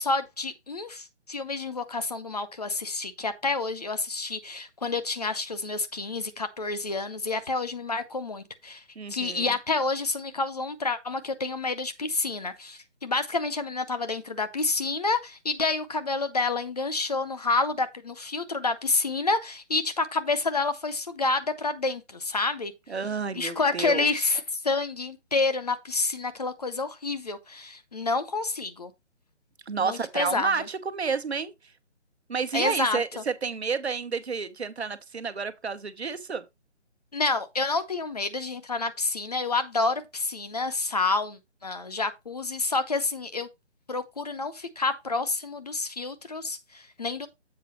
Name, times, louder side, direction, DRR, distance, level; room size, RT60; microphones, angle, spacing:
voice 1, 0.0-8.8 9.1-22.7 23.3-28.9 29.8-30.5 32.5-33.0 37.1-43.5 43.9-47.3, left 3 dB, 35° left, 0.6 m, -29 dB
voice 2, 9.0-9.5 22.9-24.1 29.7-31.5 32.3-36.4, right 5 dB, 65° right, 1.0 m, -30 dB
7.6 x 4.7 x 4.3 m
figure-of-eight pair, 150°, 35 cm